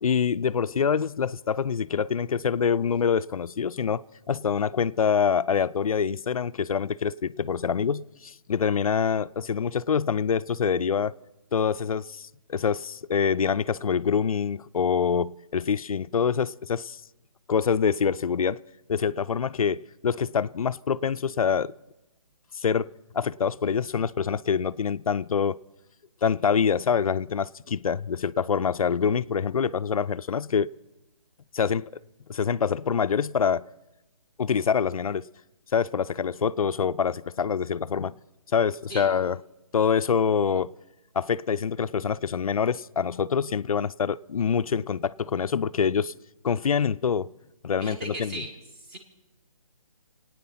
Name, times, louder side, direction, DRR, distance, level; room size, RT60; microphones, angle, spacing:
voice 1, 0.0-11.1 11.5-17.0 17.5-18.6 18.9-21.7 22.6-22.9 23.1-25.6 26.2-30.7 31.5-31.9 32.3-33.7 34.4-35.3 35.7-38.1 38.5-39.4 39.7-40.7 41.2-46.1 46.4-47.3 47.6-48.4, left 7 dB, 85° left, 0.5 m, -25 dB
voice 2, 47.8-49.0, right 1 dB, 20° right, 2.0 m, -38 dB
25.5 x 9.3 x 5.7 m
hypercardioid pair, 170°, 18 cm